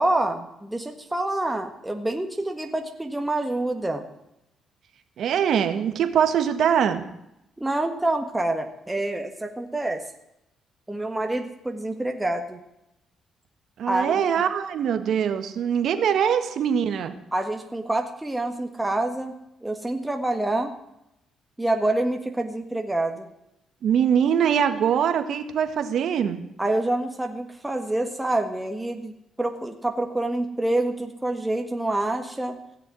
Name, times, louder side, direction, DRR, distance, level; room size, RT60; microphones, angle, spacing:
voice 1, 0.0-4.1 7.6-10.0 10.9-12.6 13.9-14.2 17.3-19.3 19.6-20.7 21.6-23.3 26.6-29.1 29.4-32.6, right 2 dB, 10° right, 4 dB, 1.6 m, -27 dB
voice 2, 5.2-7.1 13.8-17.1 23.8-26.4, right 8 dB, 70° right, 9 dB, 1.6 m, -23 dB
16.5 x 7.0 x 9.8 m, 0.84 s
cardioid pair, 90°, 0 cm